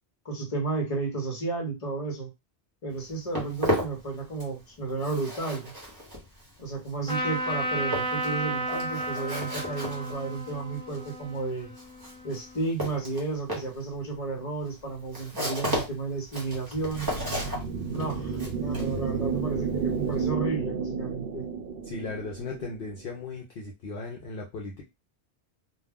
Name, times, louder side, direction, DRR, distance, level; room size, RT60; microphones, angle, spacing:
voice 1, 0.2-2.3 2.8-5.7 6.6-11.7 12.2-17.1 17.9-21.4, right 3 dB, 35° left, 2 dB, 1.0 m, -32 dB
Walk footsteps, 2.9-4.6 4.9-20.3, equal, 20° right, 0.9 m, -35 dB
Trumpet, 7.1-12.6, right 1 dB, 5° left, 0.4 m, -33 dB
sound 1, 16.7-23.2, right 5 dB, 65° right, 0.7 m, -32 dB
voice 2, 21.8-24.8, left 3 dB, 65° left, -1 dB, 0.7 m, -37 dB
2.3 x 2.3 x 3.5 m, 0.23 s
omnidirectional pair, 1.1 m